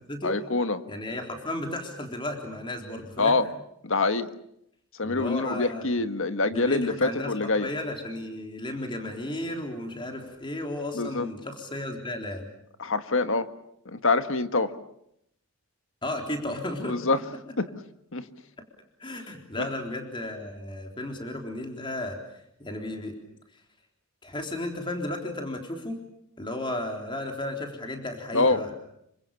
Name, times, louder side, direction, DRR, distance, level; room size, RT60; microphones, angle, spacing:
voice 1, 0.2-0.8 3.2-3.5 3.8-4.3 5.0-7.7 10.9-11.3 12.8-13.5 13.8-14.7 16.8-17.2 17.6-17.7 18.1-18.3 19.6-19.7 28.3-28.7, left 3 dB, 60° left, 10 dB, 1.6 m, -25 dB
voice 2, 0.9-3.4 5.0-5.9 6.5-12.5 16.0-17.0 19.0-23.2 24.2-26.0 26.4-28.7, left 1 dB, 20° left, 3 dB, 3.8 m, -34 dB
28.0 x 25.0 x 7.0 m, 0.74 s
head